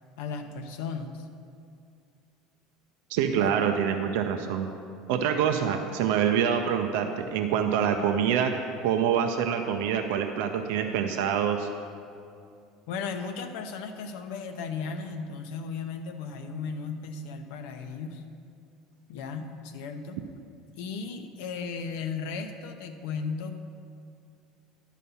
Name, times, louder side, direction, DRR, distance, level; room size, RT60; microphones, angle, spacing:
voice 1, 0.2-1.3 3.4-3.6 12.9-18.2 19.1-20.2 20.8-23.6, left 5 dB, 75° left, 7 dB, 0.7 m, -35 dB
voice 2, 3.1-4.7 5.1-8.5 8.8-11.7, right 8 dB, 75° right, 5 dB, 0.5 m, -26 dB
11.0 x 4.2 x 6.9 m, 2.5 s
supercardioid pair, 90°, 0 cm